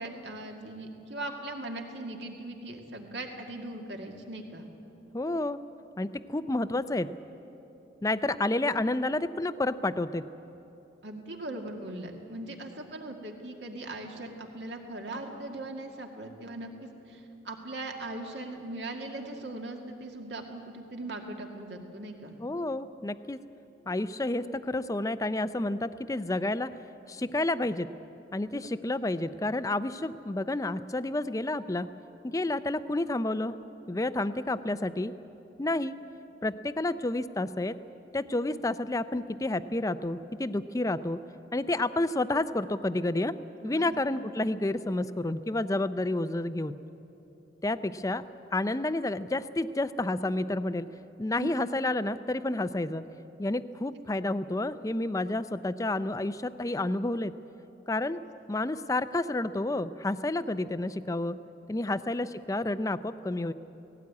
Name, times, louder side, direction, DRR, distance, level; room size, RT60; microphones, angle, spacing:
voice 1, 0.0-4.7 11.0-22.3 43.6-44.0 51.3-51.5, right 2 dB, 70° right, 2 dB, 2.1 m, -39 dB
voice 2, 5.1-5.6 6.0-7.1 8.0-10.3 22.4-23.4 23.9-26.7 27.1-27.9 28.3-31.9 32.3-33.5 33.9-35.1 35.6-35.9 36.4-37.8 38.1-41.2 41.5-43.4 43.6-46.8 47.6-48.2 48.5-50.9 51.2-53.0 53.4-57.3 57.9-58.2 58.5-61.4 61.7-63.5, left 2 dB, 20° left, 13 dB, 0.5 m, -30 dB
18.0 x 17.0 x 9.5 m, 3.0 s
head